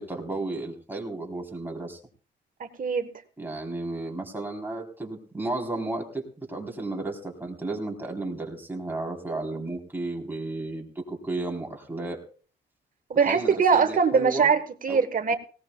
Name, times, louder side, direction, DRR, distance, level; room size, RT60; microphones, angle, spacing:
voice 1, 0.0-2.0 3.4-12.2 13.3-14.5 14.9-15.0, right 2 dB, 10° right, 1 dB, 3.7 m, -33 dB
voice 2, 2.6-3.1 13.1-15.3, right 6 dB, 45° right, 10 dB, 1.3 m, -22 dB
18.0 x 17.5 x 2.3 m, 0.40 s
cardioid pair, 90°, 20 cm